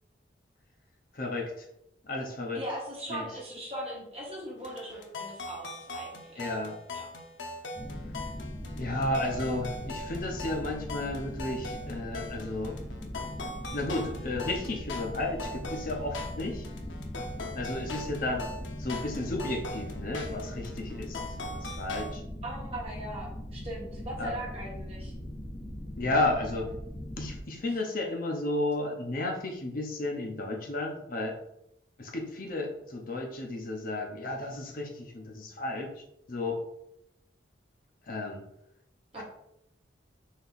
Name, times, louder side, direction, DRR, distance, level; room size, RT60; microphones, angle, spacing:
voice 1, 1.1-1.7 2.0-2.6 3.1-3.2 6.4-6.8 8.8-12.8 13.7-16.7 17.5-18.5 18.8-22.2 24.2-24.3 26.0-26.7 27.2-31.4 32.0-35.9 36.3-36.6 38.1-38.4 39.2-39.3, left 2 dB, 50° left, 1 dB, 0.7 m, -33 dB
voice 2, 2.5-6.6 6.9-7.1 22.4-25.1 39.1-39.2, right 1 dB, 30° right, -4 dB, 1.3 m, -39 dB
sound 1, 4.6-22.2, left 2 dB, 85° left, 0.7 m, -41 dB
sound 2, 7.8-27.4, equal, 15° left, 0.5 m, -40 dB
4.2 x 3.0 x 3.9 m, 0.79 s
head